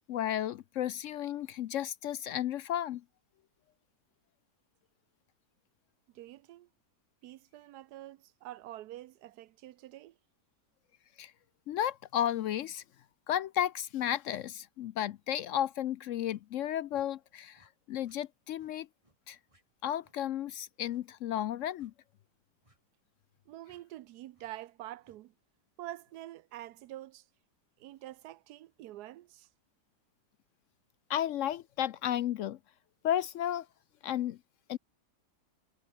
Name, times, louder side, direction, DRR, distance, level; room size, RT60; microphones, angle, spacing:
voice 1, 0.1-3.0 11.2-11.3 11.7-12.8 13.3-18.9 19.3-19.4 19.8-21.9 31.1-32.6 33.0-33.7 34.0-34.4 34.7-34.8, left 11 dB, 70° left, 0.7 m, -33 dB
voice 2, 6.1-6.7 7.2-10.2 23.5-25.3 25.8-27.3 27.8-29.5, right 14 dB, 75° right, 1.1 m, -46 dB
sound 1, 16.3-16.5 16.9-17.1 17.5-17.7 18.0-18.2 18.6-18.7 19.0-19.2 19.5-19.6 20.0-20.2 20.9-21.1 21.8-22.0 22.6-22.8 23.6-23.8 24.3-24.5 25.0-25.2, right 1 dB, 20° right, 6.8 m, -68 dB
omnidirectional pair, 1.8 m